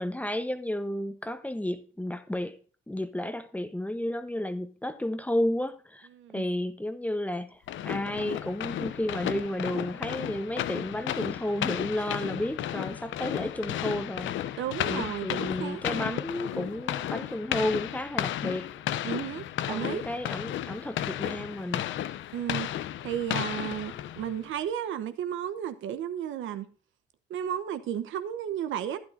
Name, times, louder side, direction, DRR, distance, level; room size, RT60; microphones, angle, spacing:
voice 1, 0.0-2.6 2.9-6.1 6.3-7.6 7.8-14.3 14.9-18.7 19.7-21.9, left 1 dB, 5° left, 1.0 m, -32 dB
voice 2, 6.1-6.5 14.6-16.2 19.0-20.1 22.3-22.7 23.0-26.7 27.3-29.0, right 10 dB, 80° right, 0.9 m, -33 dB
sound 1, 7.7-24.4, left 12 dB, 75° left, 0.6 m, -33 dB
11.5 x 10.0 x 2.6 m
cardioid pair, 90°, 20 cm